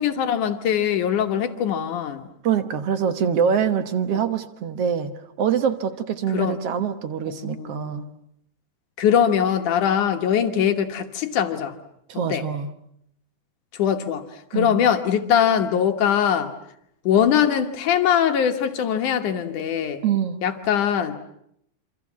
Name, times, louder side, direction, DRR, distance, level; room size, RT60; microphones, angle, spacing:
voice 1, 0.0-2.3 4.1-4.2 6.3-6.6 7.3-8.1 9.0-11.8 12.3-12.4 13.7-14.2 14.5-16.5 17.0-20.0 20.4-21.2, left 8 dB, 65° left, 6 dB, 2.5 m, -22 dB
voice 2, 2.4-5.1 5.4-8.0 12.1-12.7 14.5-14.8 20.0-20.4, right 7 dB, 65° right, 10 dB, 1.5 m, -24 dB
27.5 x 26.0 x 7.4 m, 0.75 s
omnidirectional pair, 4.3 m